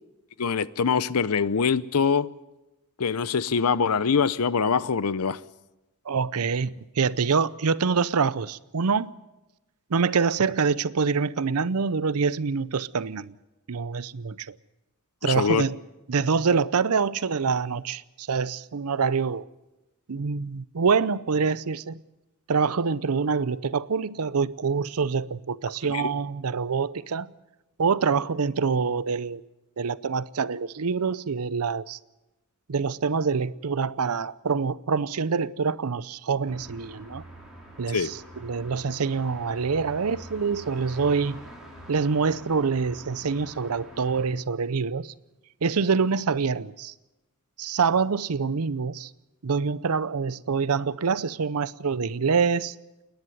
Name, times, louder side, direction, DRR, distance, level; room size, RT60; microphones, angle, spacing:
voice 1, 0.4-2.3 3.0-5.4 15.2-15.6 25.9-26.1 37.9-38.1, left 6 dB, 85° left, 0.7 m, -24 dB
voice 2, 6.1-9.1 9.9-13.3 13.7-14.5 15.2-15.8 16.1-19.4 20.1-22.0 22.5-27.3 27.8-29.4 29.8-32.0 32.7-37.2 37.8-41.4 41.9-45.1 45.6-46.9 47.6-49.1 49.4-52.7, right 5 dB, 85° right, 0.6 m, -25 dB
sound 1, 36.5-44.3, right 1 dB, ahead, 4.6 m, -46 dB
28.5 x 10.5 x 9.4 m
head